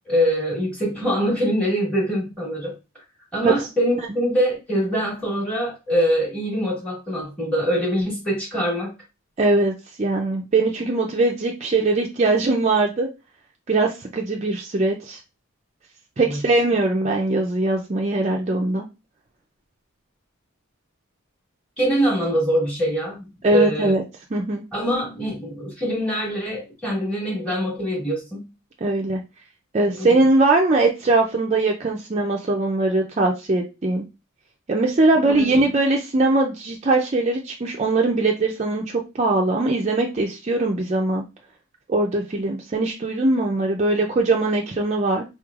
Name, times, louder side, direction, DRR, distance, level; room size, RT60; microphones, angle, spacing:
voice 1, 0.1-2.8 3.3-8.9 16.2-16.4 21.8-23.9 24.7-28.5 29.9-30.1 35.3-35.6, equal, 5° left, -6 dB, 1.4 m, -24 dB
voice 2, 9.4-9.7 10.0-13.1 13.7-15.2 16.2-18.8 23.4-24.0 24.3-24.6 28.8-29.2 29.7-34.1 34.7-41.2 41.9-45.2, right 2 dB, 30° right, 1 dB, 0.4 m, -21 dB
4.2 x 3.1 x 2.4 m, 0.27 s
head